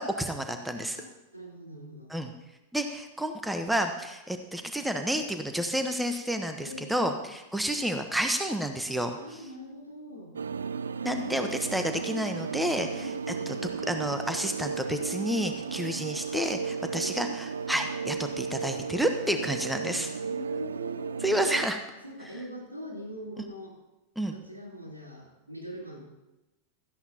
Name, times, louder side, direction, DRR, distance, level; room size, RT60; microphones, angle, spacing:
voice 1, 0.0-1.0 2.1-2.3 2.7-9.2 11.0-12.9 13.9-20.1 21.2-21.8 24.2-24.3, right 1 dB, 5° right, 6 dB, 1.1 m, -30 dB
voice 2, 1.0-2.1 6.6-7.2 9.1-10.4 12.9-13.7 16.6-17.3 19.4-19.5 19.9-21.1 21.4-21.6 22.0-23.8 24.3-26.1, equal, 85° right, -3 dB, 3.9 m, -43 dB
sound 1, 10.3-21.7, right 6 dB, 70° right, 0.4 m, -35 dB
17.0 x 13.5 x 2.9 m, 1.0 s
figure-of-eight pair, 90°, 0 cm